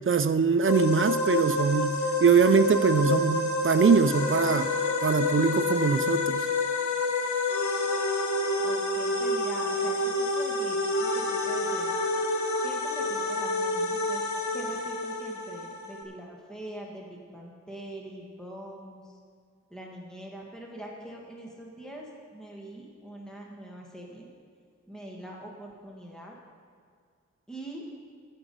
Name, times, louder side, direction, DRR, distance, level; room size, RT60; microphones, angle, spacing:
voice 1, 0.1-1.9 2.2-4.7 5.0-6.5, right 5 dB, 45° right, 11 dB, 0.5 m, -22 dB
sound 1, 0.6-16.0, left 2 dB, 85° left, 1.2 m, -28 dB
voice 2, 8.6-11.9 12.6-14.3 14.5-19.0 19.7-24.3 24.9-26.4 27.5-27.8, right 1 dB, ahead, -2 dB, 1.8 m, -43 dB
14.5 x 6.2 x 5.5 m, 2.2 s
wide cardioid pair, 90°, 29 cm